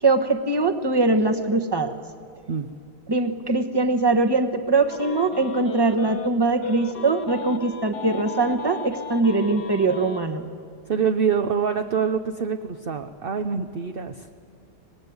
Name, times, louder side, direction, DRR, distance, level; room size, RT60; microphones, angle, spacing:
voice 1, 0.0-1.9 3.1-10.5, right 3 dB, 15° right, 5 dB, 1.1 m, -22 dB
sound 1, 4.9-6.3 6.6-10.2, left 4 dB, 70° left, 1.8 m, -36 dB
voice 2, 10.9-14.3, right 6 dB, 50° right, 6 dB, 0.7 m, -25 dB
24.0 x 20.0 x 9.5 m, 2.3 s
omnidirectional pair, 1.8 m